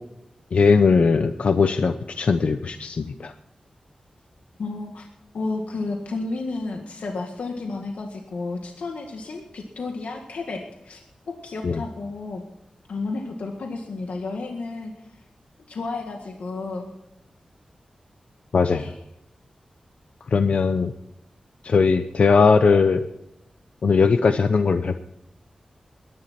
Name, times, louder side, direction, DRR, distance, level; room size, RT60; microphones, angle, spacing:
voice 1, 0.5-3.3 11.6-11.8 18.5-18.8 20.3-20.9 21.6-23.0 23.8-25.0, left 5 dB, 70° left, 8 dB, 0.7 m, -19 dB
voice 2, 4.6-5.1 5.3-12.4 12.9-15.1 15.7-16.9 18.7-19.0, left 3 dB, 85° left, 2 dB, 1.8 m, -32 dB
21.0 x 11.0 x 4.4 m, 0.87 s
wide cardioid pair, 115°, 2 cm